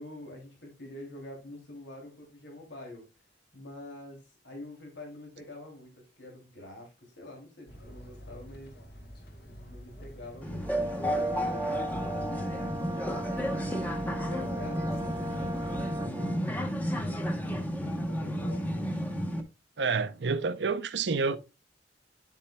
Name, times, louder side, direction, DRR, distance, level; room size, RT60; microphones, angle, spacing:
voice 1, 0.0-3.1 3.5-8.8 9.4-13.8 14.1-16.6 17.2-18.9, left 1 dB, 90° left, 2.8 m, -46 dB
sound 1, 7.7-16.0, equal, 60° left, 1.5 m, -47 dB
sound 2, 10.4-19.4, equal, 10° left, 0.9 m, -32 dB
Brass instrument, 10.6-16.5, right 1 dB, 20° right, 0.4 m, -39 dB
voice 2, 19.8-21.4, right 4 dB, 70° right, 0.6 m, -28 dB
8.8 x 7.2 x 2.2 m
head